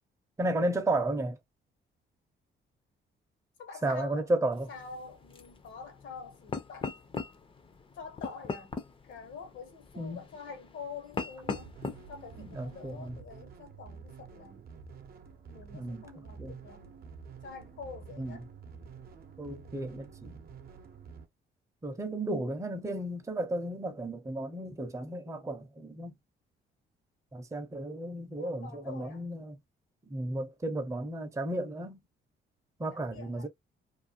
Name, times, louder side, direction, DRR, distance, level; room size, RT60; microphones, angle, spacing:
voice 1, 0.4-1.4 3.8-4.7 10.0-10.2 12.4-13.2 15.7-16.0 16.4-16.5 18.2-18.4 19.4-20.4 21.8-26.2 27.3-29.5 30.1-32.0 32.8-33.5, right 1 dB, 15° right, 0.6 m, -33 dB
voice 2, 3.6-6.9 7.9-8.7 9.0-11.7 12.1-14.6 15.5-16.9 17.4-18.4 28.4-29.2 32.9-33.5, left 5 dB, 70° left, 1.1 m, -46 dB
sound 1, 4.5-13.1, left 4 dB, 25° left, 0.5 m, -41 dB
sound 2, 11.4-21.3, right 6 dB, 50° right, 0.7 m, -49 dB
2.5 x 2.2 x 2.7 m
cardioid pair, 90°, 20 cm